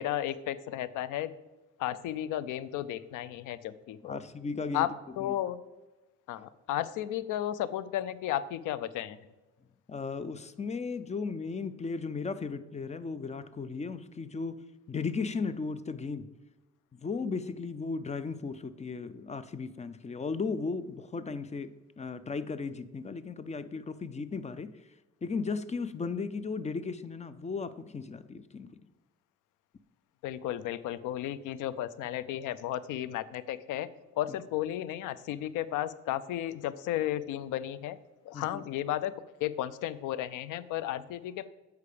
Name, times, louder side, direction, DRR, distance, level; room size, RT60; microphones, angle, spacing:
voice 1, 0.0-1.3 1.8-4.2 4.7-4.9 5.2-5.6 6.3-9.2 30.2-33.9 34.2-38.0 38.3-39.1 39.4-41.5, left 12 dB, 85° left, 16 dB, 0.5 m, -33 dB
voice 2, 4.0-4.9 5.2-5.4 9.9-16.3 16.9-24.9 25.2-28.8 38.3-38.6, left 4 dB, 25° left, 14 dB, 0.5 m, -36 dB
8.4 x 4.7 x 5.0 m, 1.1 s
cardioid pair, 90°, 30 cm